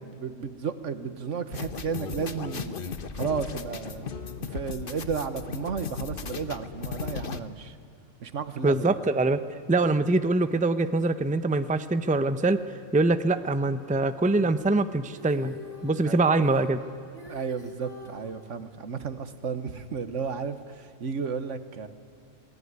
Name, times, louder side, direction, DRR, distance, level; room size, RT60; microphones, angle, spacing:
voice 1, 0.0-2.7 3.1-4.1 4.4-7.8 8.2-9.0 16.1-16.2 17.3-21.9, right 6 dB, 70° right, 11 dB, 1.6 m, -33 dB
sound 1, 1.5-7.4, left 5 dB, 45° left, 1.2 m, -36 dB
voice 2, 8.6-9.4 9.7-12.6 12.9-15.6 15.8-16.8, right 2 dB, 10° right, 11 dB, 0.7 m, -24 dB
Female singing, 15.0-18.3 20.3-20.4, left 1 dB, 30° right, 3.1 m, -44 dB
27.0 x 19.0 x 9.7 m, 2.5 s
omnidirectional pair, 1.3 m